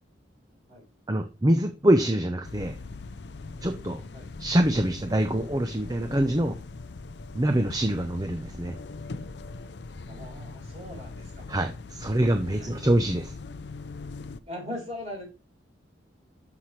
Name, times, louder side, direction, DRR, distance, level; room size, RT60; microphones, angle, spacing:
voice 1, 1.1-2.8 3.6-4.0 4.4-6.6 7.3-8.7 11.5-13.3, right 1 dB, 20° right, 6 dB, 0.7 m, -25 dB
sound 1, 2.4-14.4, left 3 dB, 65° left, 0.6 m, -41 dB
voice 2, 10.1-11.4 12.5-12.7 14.5-15.2, left 1 dB, 35° right, -3 dB, 5.2 m, -39 dB
13.0 x 5.9 x 3.2 m, 0.30 s
head